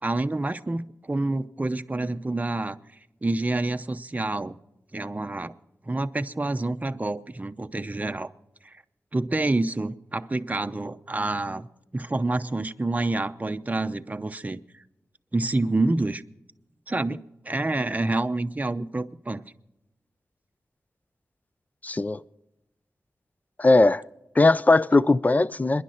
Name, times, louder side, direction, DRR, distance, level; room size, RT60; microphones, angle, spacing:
voice 1, 0.0-2.8 3.2-4.6 4.9-5.5 5.8-8.3 8.6-8.8 9.1-11.7 11.9-14.8 15.3-16.2 16.9-19.4, right 2 dB, 25° right, 0.7 m, -28 dB
voice 2, 21.8-22.2 23.6-24.0 24.4-25.8, left 2 dB, 25° left, 0.5 m, -19 dB
26.5 x 11.0 x 4.4 m
wide cardioid pair, 65°, 6 cm